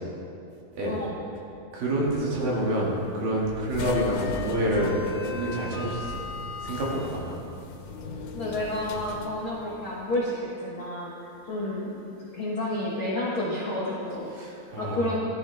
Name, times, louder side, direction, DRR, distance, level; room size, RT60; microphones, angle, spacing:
voice 1, 1.7-5.0 5.3-6.2 6.6-7.4 14.3-15.1, right 1 dB, 70° right, -4 dB, 3.9 m, -28 dB
sound 1, 3.7-10.2, left 4 dB, 90° left, 2.9 m, -36 dB
voice 2, 8.3-12.0 12.3-15.2, left 1 dB, 60° left, -6 dB, 1.4 m, -30 dB
15.5 x 12.0 x 3.4 m, 2.6 s
omnidirectional pair, 4.3 m